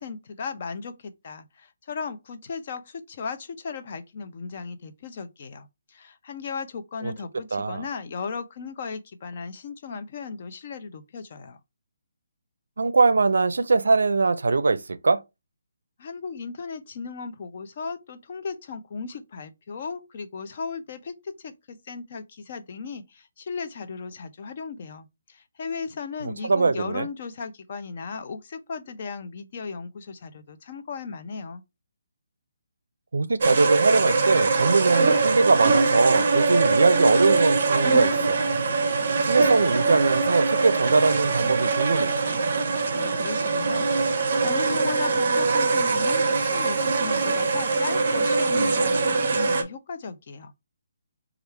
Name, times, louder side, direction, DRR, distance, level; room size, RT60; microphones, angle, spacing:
voice 1, 0.0-11.6 16.0-31.6 42.9-50.5, left 5 dB, 35° left, 0.5 m, -36 dB
voice 2, 7.5-7.8 12.8-15.2 26.2-27.1 33.1-38.4 39.2-42.1, right 3 dB, 85° right, 0.4 m, -22 dB
sound 1, 33.4-49.6, right 4 dB, 40° right, 0.6 m, -22 dB
3.4 x 2.4 x 4.4 m
hypercardioid pair, 170°, 0 cm